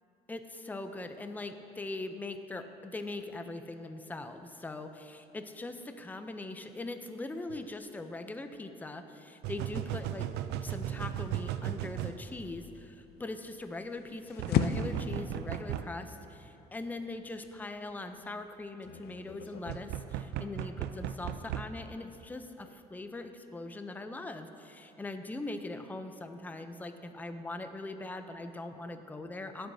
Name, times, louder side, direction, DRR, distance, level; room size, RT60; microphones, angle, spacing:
voice 1, 0.3-10.3 10.6-29.7, left 2 dB, 10° left, 8 dB, 0.5 m, -41 dB
sound 1, 7.5-7.6 9.4-12.2 14.4-15.9 19.7-21.7, right 11 dB, 80° right, 0.4 m, -36 dB
sound 2, 12.2-19.8, left 8 dB, 70° left, 0.5 m, -37 dB
16.5 x 7.8 x 2.7 m, 2.9 s
cardioid pair, 110°, 17 cm